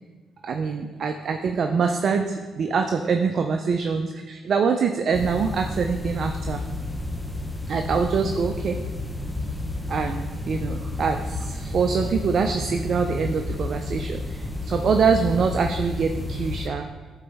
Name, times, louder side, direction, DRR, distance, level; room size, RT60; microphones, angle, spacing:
voice 1, 0.4-6.6 7.7-8.8 9.9-16.9, right 5 dB, 55° right, 5 dB, 0.4 m, -24 dB
sound 1, 5.1-16.7, left 2 dB, 10° left, 0.7 m, -31 dB
11.5 x 4.0 x 3.4 m, 1.3 s
cardioid pair, 85°, 0 cm